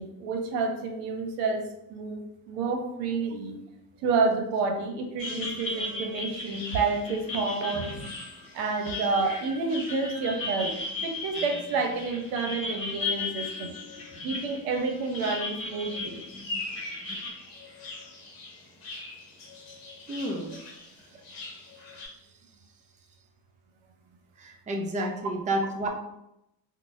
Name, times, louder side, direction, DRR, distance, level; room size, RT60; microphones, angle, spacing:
voice 1, 0.0-1.6 1.9-3.6 4.0-8.2 8.5-10.8 11.0-13.7 14.2-16.2, right 4 dB, 75° right, 3 dB, 0.7 m, -29 dB
sound 1, 5.2-22.1, left 2 dB, 85° left, 1.0 m, -44 dB
sound 2, 5.2-17.3, left 2 dB, 25° left, 1.1 m, -36 dB
voice 2, 20.1-20.6 21.9-22.0 24.4-25.9, right 1 dB, 15° right, 1 dB, 0.5 m, -30 dB
3.9 x 2.0 x 2.5 m, 0.83 s
hypercardioid pair, 60°, 48 cm